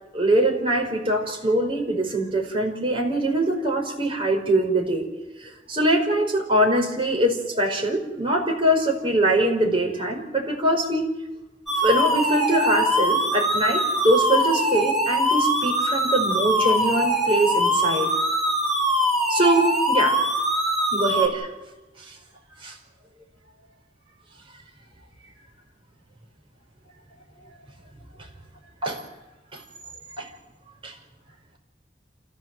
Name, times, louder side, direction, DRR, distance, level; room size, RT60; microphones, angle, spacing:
voice 1, 0.1-5.1 5.4-11.1 11.8-18.1 19.3-20.2 20.9-21.5 22.0-22.2 22.6-22.7 28.8-29.0 29.5-29.6 30.2-30.3 30.8-30.9, right 1 dB, 30° right, 1 dB, 5.1 m, -23 dB
sound 1, 11.7-21.3, equal, ahead, 3.8 m, -22 dB
28.5 x 15.5 x 7.8 m, 1.0 s
head